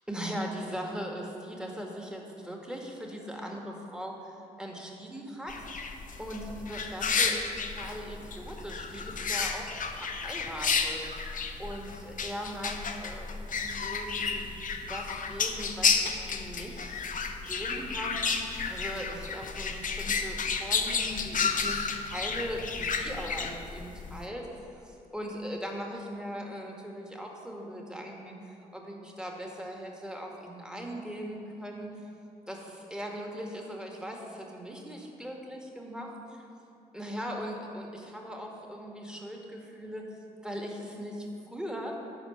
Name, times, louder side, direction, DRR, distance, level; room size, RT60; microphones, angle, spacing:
voice 1, 0.1-13.3 13.6-14.6 14.9-24.4 24.7-31.9 32.5-36.4 36.9-40.2 40.4-42.0, equal, 5° right, 0 dB, 2.1 m, -40 dB
sound 1, 5.5-24.2, left 5 dB, 50° left, 0.9 m, -32 dB
11.5 x 4.4 x 8.1 m, 2.9 s
hypercardioid pair, 45°, 17 cm